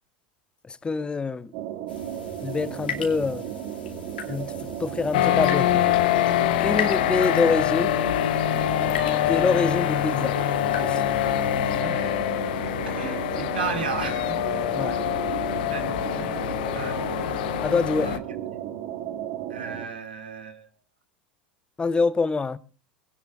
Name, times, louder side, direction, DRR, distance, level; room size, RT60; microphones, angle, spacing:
voice 1, 0.8-1.5 2.4-3.5 4.3-4.5 4.8-5.7 6.6-8.0 9.3-10.3 10.8-11.0 14.7-15.0 17.6-18.1 21.8-22.6, left 4 dB, 20° left, 0.7 m, -25 dB
sound 1, 1.5-19.9, right 10 dB, 60° right, 2.3 m, -35 dB
sound 2, 1.9-11.8, left 6 dB, 85° left, 2.5 m, -38 dB
sound 3, 5.1-18.2, left 13 dB, 70° left, 1.0 m, -25 dB
voice 2, 11.8-12.1 12.9-14.4 15.7-16.4 16.7-17.0 18.0-18.2 19.5-20.7, right 6 dB, 85° right, 2.3 m, -34 dB
21.5 x 17.5 x 2.5 m
hypercardioid pair, 85°, 5 cm